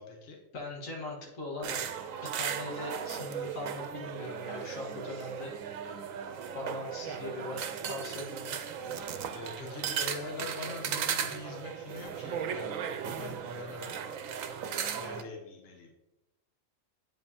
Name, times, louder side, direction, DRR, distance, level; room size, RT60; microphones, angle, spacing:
voice 1, 0.0-0.4 9.3-12.7 13.0-13.9 14.9-15.9, left 3 dB, 55° left, 1 dB, 1.1 m, -43 dB
voice 2, 0.5-1.8 2.2-5.6 6.5-8.7, left 2 dB, 80° left, -1 dB, 1.8 m, -40 dB
sound 1, 1.6-15.2, right 8 dB, 90° right, 1.0 m, -36 dB
8.6 x 5.1 x 2.8 m, 0.95 s
omnidirectional pair, 1.4 m